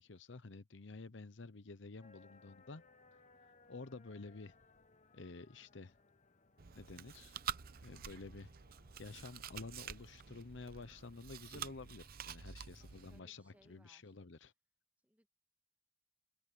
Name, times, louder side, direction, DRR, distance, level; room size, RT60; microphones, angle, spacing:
voice 1, 0.0-2.8 3.4-4.6 5.1-5.9 6.7-7.3 7.8-8.5 9.0-14.5, left 3 dB, 65° left, 0.9 m, -51 dB
sound 1, 2.0-13.8, left 3 dB, 35° left, 1.2 m, -68 dB
Chewing mastication, 6.6-13.2, right 8 dB, 50° right, 0.7 m, -48 dB
voice 2, 12.8-14.2 15.0-15.3, equal, 10° right, 2.5 m, -70 dB
head